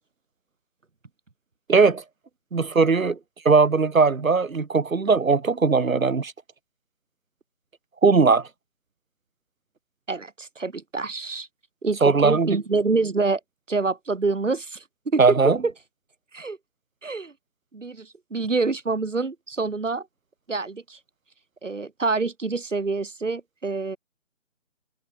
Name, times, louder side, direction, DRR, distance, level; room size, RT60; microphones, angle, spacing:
voice 1, 1.7-2.0 2.5-3.2 3.5-6.3 8.0-8.5 12.0-12.6 15.2-15.6, right 4 dB, 90° right, 2.0 m, -19 dB
voice 2, 10.1-11.5 11.8-13.4 13.7-15.7 16.3-16.6 17.0-17.3 17.7-20.1 20.5-21.0 21.6-24.0, right 3 dB, 65° right, 4.6 m, -26 dB
hypercardioid pair, 180°, 40 cm